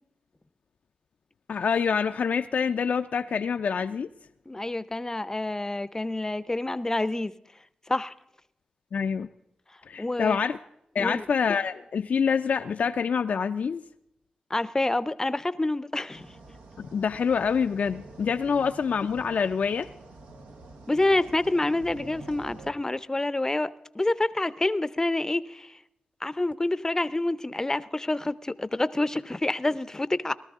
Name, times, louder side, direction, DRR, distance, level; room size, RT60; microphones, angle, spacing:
voice 1, 1.5-4.1 8.9-9.3 9.9-10.6 10.9-13.8 16.8-19.9, left 6 dB, 65° left, 0.4 m, -26 dB
voice 2, 4.5-7.3 7.9-8.1 10.0-10.4 11.0-11.2 14.5-16.3 20.9-25.8 26.2-30.3, left 2 dB, 20° left, 0.6 m, -27 dB
sound 1, 16.1-22.7, right 2 dB, 85° right, 1.2 m, -47 dB
19.0 x 13.0 x 3.6 m
cardioid pair, 65°, 3 cm